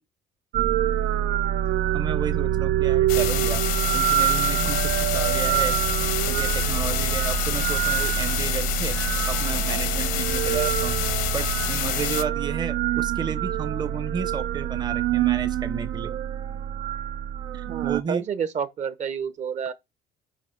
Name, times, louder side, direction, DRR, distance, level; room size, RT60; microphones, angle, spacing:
sound 1, 0.5-18.0, right 11 dB, 90° right, 0.5 m, -25 dB
voice 1, 1.9-3.7 3.9-5.8 6.3-9.0 9.3-11.0 11.3-16.2 17.5-18.2, right 6 dB, 30° right, 0.7 m, -32 dB
sound 2, 3.1-12.2, left 13 dB, 80° left, 0.8 m, -28 dB
voice 2, 17.7-19.7, right 7 dB, 55° right, 1.0 m, -29 dB
6.4 x 4.0 x 5.1 m
cardioid pair, 105°, 14 cm